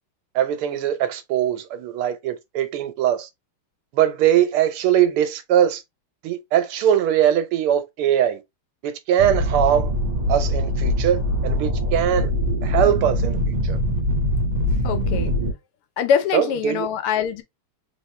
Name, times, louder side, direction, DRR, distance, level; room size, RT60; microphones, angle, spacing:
voice 1, 0.3-3.3 3.9-5.8 6.2-8.4 8.8-9.9 10.3-12.3 12.6-13.8 16.3-16.9, right 10 dB, 80° right, 1.6 m, -21 dB
sound 1, 9.2-15.5, left 1 dB, 20° right, 1.7 m, -23 dB
voice 2, 14.8-15.3 16.0-17.4, left 8 dB, 90° left, 1.7 m, -23 dB
3.5 x 3.5 x 3.1 m
omnidirectional pair, 2.4 m